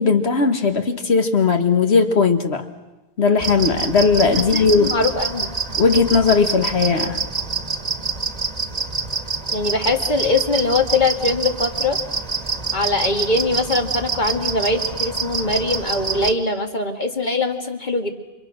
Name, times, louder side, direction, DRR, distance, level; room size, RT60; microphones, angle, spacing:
voice 1, 0.0-2.6 3.2-5.0 5.8-7.2, left 4 dB, 75° left, 7 dB, 2.1 m, -17 dB
sound 1, 3.4-16.3, right 4 dB, 35° right, 1.6 m, -26 dB
voice 2, 4.4-5.5 9.5-12.0 12.7-18.1, left 2 dB, 45° left, 4 dB, 2.0 m, -22 dB
29.5 x 26.0 x 6.2 m, 1.0 s
omnidirectional pair, 1.1 m